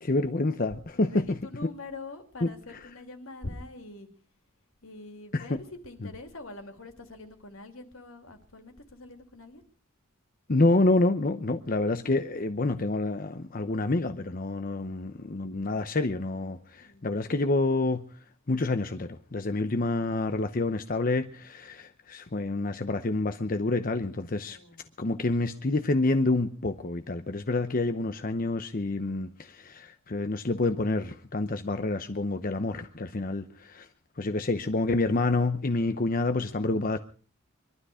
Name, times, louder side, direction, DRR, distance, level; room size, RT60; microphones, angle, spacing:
voice 1, 0.0-1.7 2.4-2.5 5.3-5.6 6.0-6.1 10.5-18.2 18.5-24.6 25.0-33.9 34.2-37.0, left 2 dB, 45° left, 0.8 m, -28 dB
voice 2, 0.9-4.1 4.8-9.6 16.7-17.1 24.4-25.0, left 2 dB, 80° left, 2.9 m, -44 dB
23.0 x 12.5 x 5.0 m
head